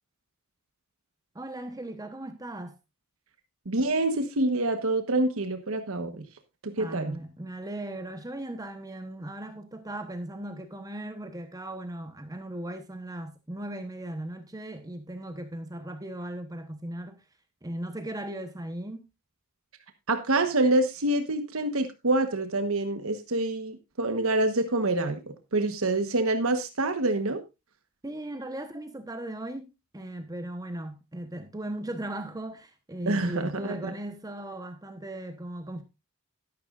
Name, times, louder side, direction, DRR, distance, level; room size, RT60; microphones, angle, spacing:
voice 1, 1.3-2.8 6.8-17.2 17.6-19.0 28.0-35.8, right 1 dB, 15° right, 1.0 m, -37 dB
voice 2, 3.6-6.3 6.6-7.2 20.1-27.4 33.1-33.9, right 2 dB, 70° right, 1.3 m, -26 dB
12.5 x 12.0 x 2.5 m
head